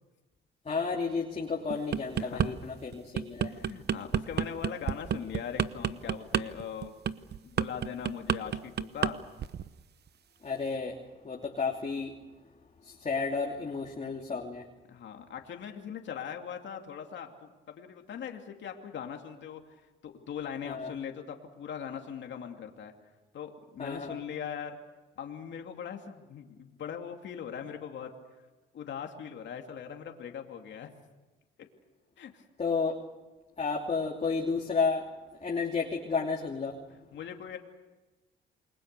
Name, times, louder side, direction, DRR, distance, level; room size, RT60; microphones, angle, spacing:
voice 1, 0.6-3.5 10.4-11.0 11.2-12.1 12.8-14.6 20.6-20.9 23.8-24.2 32.6-32.9 33.6-35.1 35.4-36.8, left 4 dB, 35° left, 0 dB, 3.0 m, -32 dB
sound 1, 1.7-2.5 2.9-9.1 9.4-9.7, right 8 dB, 55° right, 1.0 m, -29 dB
voice 2, 2.2-2.5 3.4-6.9 7.4-9.2 14.9-19.6 20.0-22.9 23.3-24.8 25.2-28.1 28.7-30.9 32.2-32.4 36.9-37.6, left 8 dB, 65° left, 3 dB, 2.7 m, -40 dB
28.5 x 22.0 x 6.9 m, 1.2 s
cardioid pair, 90°, 20 cm